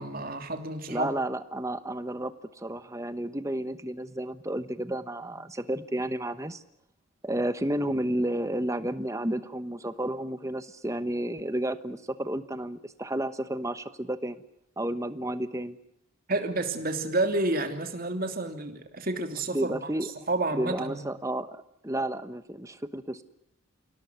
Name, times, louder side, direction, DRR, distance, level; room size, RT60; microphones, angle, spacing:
voice 1, 0.0-1.1 16.3-19.8 20.3-21.0, right 2 dB, 40° right, 6 dB, 2.9 m, -30 dB
voice 2, 0.9-6.6 7.2-14.4 14.8-15.8 19.5-20.1 20.5-23.2, right 1 dB, 15° right, 12 dB, 1.1 m, -31 dB
29.0 x 18.0 x 9.5 m, 0.81 s
head